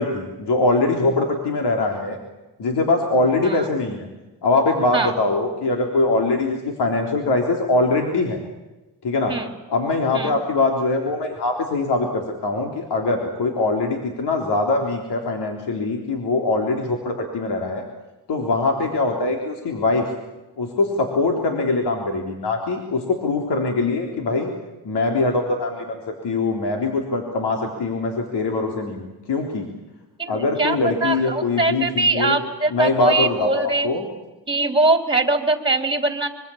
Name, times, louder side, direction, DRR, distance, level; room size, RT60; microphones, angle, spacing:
voice 1, 0.0-2.2 2.6-4.1 4.4-8.4 9.0-9.3 9.7-17.8 18.3-20.1 20.6-24.5 24.8-29.7 30.3-32.4 32.7-34.1, left 3 dB, 70° left, 2 dB, 3.8 m, -22 dB
voice 2, 30.2-33.9 34.5-36.3, right 2 dB, 10° right, 6 dB, 3.7 m, -22 dB
25.0 x 24.0 x 7.2 m, 1.1 s
cardioid pair, 100°, 41 cm